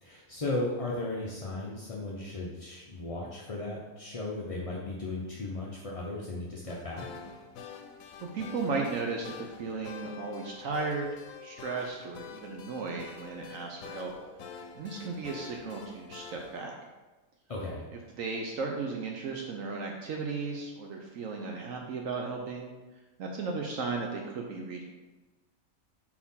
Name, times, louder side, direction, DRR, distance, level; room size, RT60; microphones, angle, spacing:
voice 1, 0.0-7.1 17.5-17.9, left 2 dB, 40° left, -4 dB, 0.5 m, -36 dB
sound 1, 6.7-16.6, left 6 dB, 75° left, 1.0 m, -47 dB
voice 2, 8.2-11.1 11.4-14.1 14.7-16.7 18.2-22.7 23.2-24.8, right 4 dB, 70° right, 0 dB, 1.0 m, -35 dB
4.6 x 4.2 x 5.5 m, 1.2 s
omnidirectional pair, 1.5 m